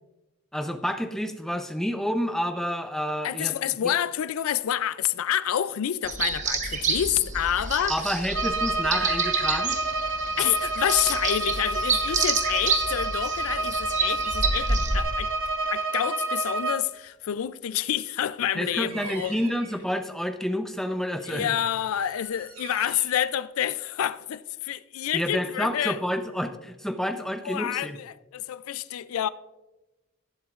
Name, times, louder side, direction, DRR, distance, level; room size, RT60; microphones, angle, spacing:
voice 1, 0.5-3.5 7.9-9.8 18.6-21.6 25.1-28.0, equal, ahead, 0.6 m, -29 dB
voice 2, 3.2-8.0 10.4-15.3 15.7-19.4 21.2-26.0 27.4-29.3, left 11 dB, 85° left, 0.4 m, -28 dB
sound 1, 6.0-15.0, right 4 dB, 35° right, 1.2 m, -29 dB
Bowed string instrument, 8.3-16.9, right 2 dB, 65° right, 0.8 m, -29 dB
Bird vocalization bird call bird song, 18.8-19.8 21.7-23.3, right 5 dB, 85° right, 2.9 m, -43 dB
18.5 x 7.9 x 2.4 m
head